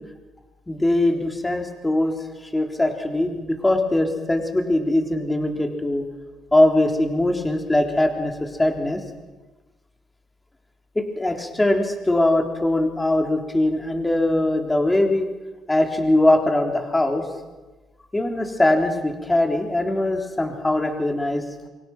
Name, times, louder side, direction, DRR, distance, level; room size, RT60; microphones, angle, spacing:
voice 1, 0.7-2.2 2.5-6.0 6.5-9.0 11.0-15.3 15.7-17.3 18.1-21.4, left 1 dB, 15° left, 3 dB, 3.8 m, -21 dB
27.5 x 25.0 x 6.2 m, 1.2 s
cardioid pair, 105°, 0 cm